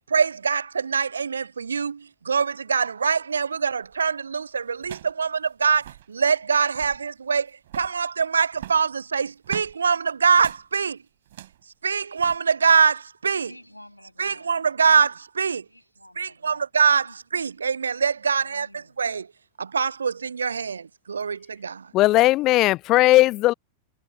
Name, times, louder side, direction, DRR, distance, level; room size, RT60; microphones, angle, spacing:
voice 1, 0.1-11.0 11.7-13.5 14.2-15.7 16.2-19.3 19.6-21.9, right 6 dB, 75° right, 0.5 m, -24 dB
sound 1, 3.8-4.1 4.8-5.2 5.5-5.6 5.7-6.1 6.6-7.0 7.6-8.0 8.5-9.8 10.4-10.7 11.2-11.6 12.2-12.4, right 14 dB, 55° right, 7.1 m, -41 dB
voice 2, 13.4-14.5 14.8-15.0 15.7-16.7 17.0-17.2 18.3-18.9, left 1 dB, 85° left, 6.3 m, -49 dB
voice 3, 21.9-23.5, left 17 dB, 35° left, 0.4 m, -17 dB
figure-of-eight pair, 90°, 0 cm